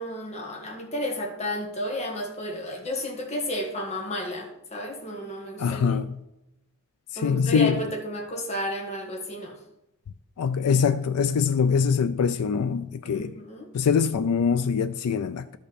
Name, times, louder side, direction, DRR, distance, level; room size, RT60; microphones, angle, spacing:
voice 1, 0.0-6.0 7.2-9.6 13.0-13.7, equal, 30° left, 1.5 m, -32 dB
voice 2, 5.6-6.1 7.1-7.8 10.4-13.3 13.7-15.6, left 6 dB, 90° left, 0.4 m, -23 dB
12.0 x 5.5 x 4.2 m
head